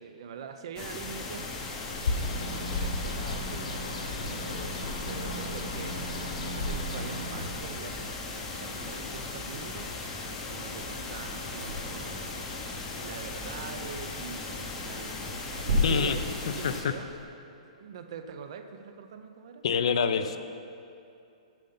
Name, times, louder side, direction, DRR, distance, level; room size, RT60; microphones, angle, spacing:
voice 1, 0.0-1.7 2.3-6.2 6.5-8.3 8.6-10.0 10.5-12.3 13.0-15.2 15.6-17.2 17.8-19.6 20.1-20.4, right 6 dB, 45° right, 8 dB, 0.5 m, -43 dB
sound 1, 0.8-16.8, left 3 dB, 15° left, 0.7 m, -38 dB
Bird, 1.9-7.8, left 1 dB, 70° left, 1.4 m, -35 dB
sound 2, 6.9-17.2, left 1 dB, 65° right, 2.1 m, -37 dB
voice 2, 15.8-16.2 16.6-16.9 19.6-20.4, left 7 dB, 55° left, 10 dB, 0.4 m, -26 dB
7.4 x 6.5 x 5.6 m, 2.6 s
hypercardioid pair, 175°, 4 cm